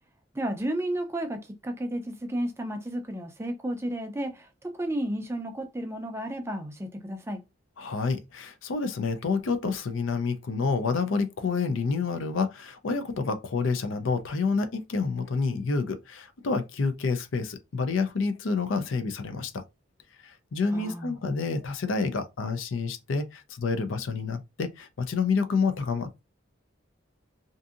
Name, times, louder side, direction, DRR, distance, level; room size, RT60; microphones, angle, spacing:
voice 1, 0.3-7.4 20.7-21.2, right 1 dB, 15° right, 0.4 m, -32 dB
voice 2, 7.8-19.6 20.2-26.2, left 4 dB, 75° left, 0.5 m, -28 dB
2.6 x 2.5 x 2.4 m
head